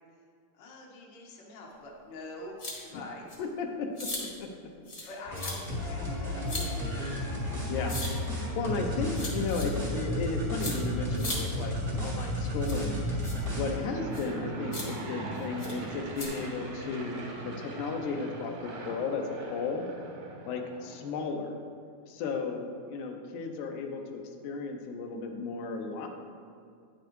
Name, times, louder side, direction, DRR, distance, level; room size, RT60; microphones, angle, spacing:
voice 1, 0.6-2.5 2.8-3.4 5.0-7.2 13.3-13.6 20.7-21.0, left 2 dB, 65° left, -2 dB, 1.1 m, -46 dB
sound 1, 2.6-2.8 3.3-3.4 4.0-4.2 4.9-5.1 5.3-5.5 6.5-6.6 7.9-8.1 9.1-9.6 10.6-10.7 11.2-11.4 12.6-12.8 13.2-13.3 14.1-14.3 14.7-14.8 15.6-15.7 16.2-16.3, left 2 dB, 45° left, 0.8 m, -37 dB
voice 2, 3.4-4.1 4.4-4.5 5.0-5.1 7.5-8.0 8.3-13.1 13.5-19.9 20.5-21.5 22.1-26.1, left 4 dB, 85° left, 4 dB, 2.1 m, -34 dB
sound 2, 5.2-13.7, equal, 35° right, 0.6 m, -32 dB
Aircraft / Engine, 13.2-21.1, right 2 dB, 80° right, 2.6 m, -40 dB
9.4 x 6.8 x 3.1 m, 2.2 s
omnidirectional pair, 3.5 m